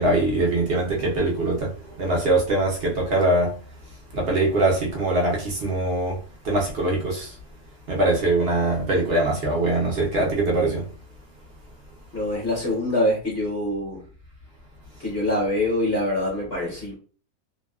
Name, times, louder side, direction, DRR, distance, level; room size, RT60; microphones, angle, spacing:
voice 1, 0.0-3.5 4.1-6.2 6.4-7.3 7.9-10.9, right 2 dB, 55° right, 0.7 m, -22 dB
voice 2, 12.1-14.0 15.0-16.9, left 1 dB, 45° left, 0.9 m, -24 dB
2.7 x 2.2 x 2.2 m
omnidirectional pair, 1.6 m